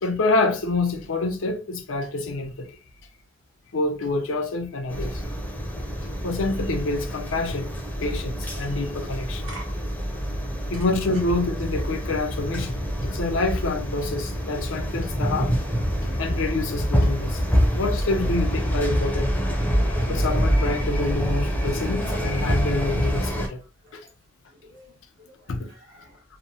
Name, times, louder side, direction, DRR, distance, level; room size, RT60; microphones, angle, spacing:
voice 1, 0.0-2.8 3.7-5.2 6.2-7.7 8.0-9.5 10.7-15.5 16.2-17.4 17.8-19.3 20.1-23.6 23.9-24.0 25.5-25.7 26.0-26.1, left 2 dB, 80° left, 0.6 m, -27 dB
sound 1, 4.9-23.5, equal, 10° left, 0.5 m, -26 dB
voice 2, 9.4-10.0 10.4-10.8 21.7-21.8 23.8-24.0 24.5-26.2, right 1 dB, 75° right, 1.0 m, -47 dB
2.8 x 2.0 x 2.7 m
head